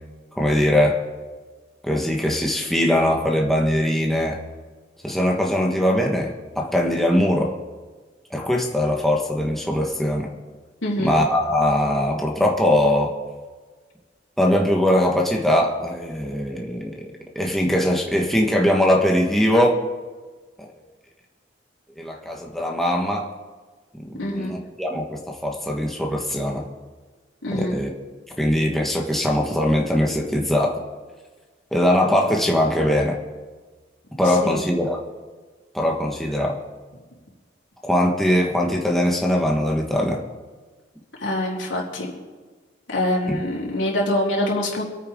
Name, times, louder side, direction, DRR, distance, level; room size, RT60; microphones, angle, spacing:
voice 1, 0.3-1.0 1.8-4.4 5.0-7.5 8.3-10.3 11.0-13.1 14.4-19.8 20.6-20.7 22.0-23.3 23.9-26.7 27.5-27.9 28.4-30.8 31.7-33.2 34.2-35.0 35.7-36.6 37.8-40.2 43.3-43.4, left 1 dB, ahead, -1 dB, 1.5 m, -21 dB
voice 2, 10.8-11.1 24.2-24.5 27.4-27.7 34.2-34.6 41.2-42.1 42.9-44.8, left 1 dB, 90° left, -3 dB, 4.0 m, -25 dB
26.5 x 9.0 x 3.8 m, 1.4 s
head